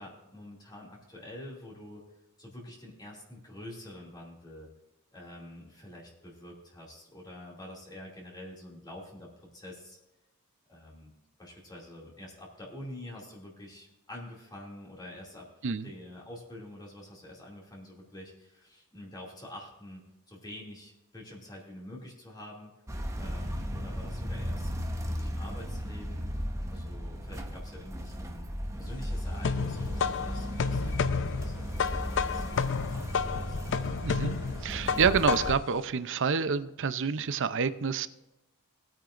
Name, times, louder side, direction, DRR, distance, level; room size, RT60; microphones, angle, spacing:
voice 1, 0.0-2.0 2.4-4.7 5.1-10.0 10.7-11.1 11.4-15.5 15.8-20.0 20.3-22.7 23.2-26.3 26.7-33.6, left 1 dB, 20° left, -3 dB, 2.5 m, -47 dB
sound 1, 22.9-35.5, equal, 15° right, 1.0 m, -35 dB
sound 2, 28.9-35.7, left 6 dB, 60° left, 0.5 m, -31 dB
voice 2, 34.0-34.4 34.6-38.1, right 6 dB, 60° right, 13 dB, 0.6 m, -28 dB
19.0 x 8.9 x 2.5 m, 0.98 s
head